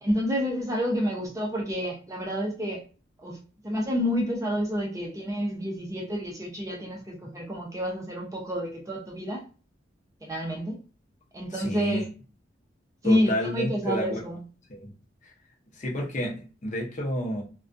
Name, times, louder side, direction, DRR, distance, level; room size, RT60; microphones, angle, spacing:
voice 1, 0.0-2.8 3.2-3.4 3.6-9.5 10.2-10.8 11.3-12.0 13.0-14.4, equal, 20° right, -1 dB, 0.5 m, -29 dB
voice 2, 11.5-12.0 13.0-14.2 14.7-14.9 15.2-15.3 15.7-17.4, equal, 40° left, -1 dB, 0.7 m, -30 dB
2.4 x 2.2 x 2.5 m, 0.36 s
head